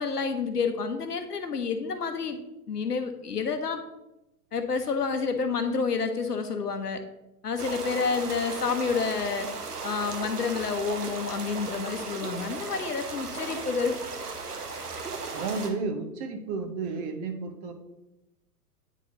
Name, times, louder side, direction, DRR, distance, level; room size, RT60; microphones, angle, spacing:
voice 1, 0.0-2.4 2.7-3.8 4.5-7.0 7.4-9.5 9.8-14.0, left 5 dB, 85° left, 8 dB, 0.9 m, -29 dB
sound 1, 7.6-15.7, right 4 dB, 80° right, 1.0 m, -36 dB
voice 2, 15.2-17.7, right 4 dB, 25° right, 6 dB, 0.5 m, -32 dB
9.0 x 4.1 x 2.9 m, 0.92 s
figure-of-eight pair, 105°, 46 cm